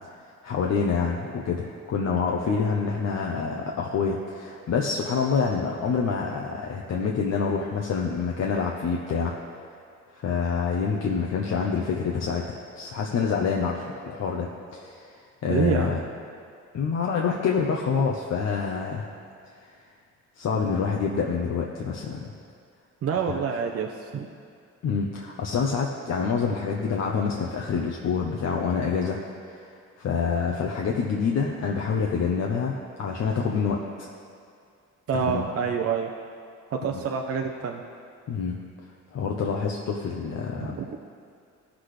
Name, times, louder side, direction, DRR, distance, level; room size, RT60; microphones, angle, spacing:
voice 1, 0.4-9.3 10.1-15.1 15.4-16.0 16.7-19.1 20.4-22.3 23.3-23.4 24.8-29.2 29.5-29.7 30.0-34.1 35.2-35.4 36.9-37.0 38.3-38.6 39.1-40.8, left 5 dB, 60° left, 0 dB, 0.8 m, -27 dB
voice 2, 15.5-16.0 23.0-24.3 35.1-36.1 36.7-37.8 40.6-40.9, right 6 dB, 50° right, 2 dB, 0.7 m, -27 dB
15.5 x 6.1 x 3.3 m, 2.4 s
cardioid pair, 90°, 30 cm